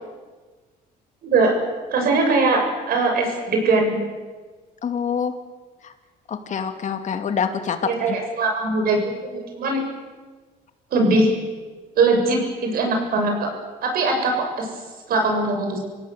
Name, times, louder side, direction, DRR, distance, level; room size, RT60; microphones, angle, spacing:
voice 1, 1.2-1.6 1.9-4.0 7.8-9.8 10.9-11.3 12.0-13.5 13.8-14.7 15.1-15.8, right 3 dB, 60° right, 3 dB, 7.2 m, -21 dB
voice 2, 4.8-5.3 5.8-5.9 6.3-7.8 8.1-8.2, left 7 dB, 45° left, 7 dB, 2.4 m, -26 dB
27.0 x 16.5 x 7.8 m, 1.4 s
cardioid pair, 110°, 17 cm